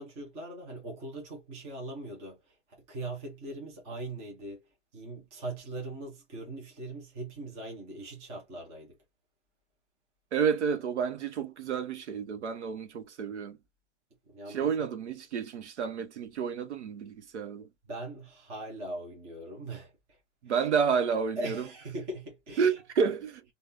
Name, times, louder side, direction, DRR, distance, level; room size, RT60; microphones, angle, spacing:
voice 1, 0.0-2.4 2.7-4.6 4.9-9.0 14.3-14.9 17.9-19.9 20.5-20.7 21.4-22.8, right 2 dB, 10° right, 0.4 m, -40 dB
voice 2, 10.3-13.6 14.5-17.7 20.4-21.7 22.6-23.4, right 6 dB, 75° right, 0.9 m, -30 dB
3.4 x 2.3 x 2.5 m
hypercardioid pair, 160°, 35 cm